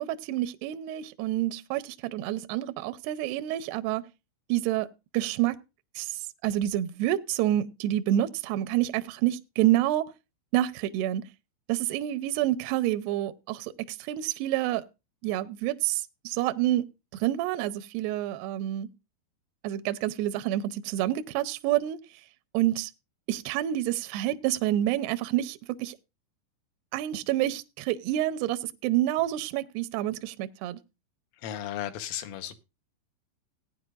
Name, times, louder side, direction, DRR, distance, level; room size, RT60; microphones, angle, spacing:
voice 1, 0.0-4.1 4.5-5.6 6.0-10.1 10.5-11.3 11.7-14.8 15.2-18.9 19.6-22.0 22.5-22.9 23.3-26.0 26.9-30.8, right 13 dB, 85° right, 2.3 m, -28 dB
voice 2, 31.4-32.6, left 11 dB, 90° left, 3.7 m, -35 dB
17.5 x 9.6 x 2.5 m
omnidirectional pair, 5.6 m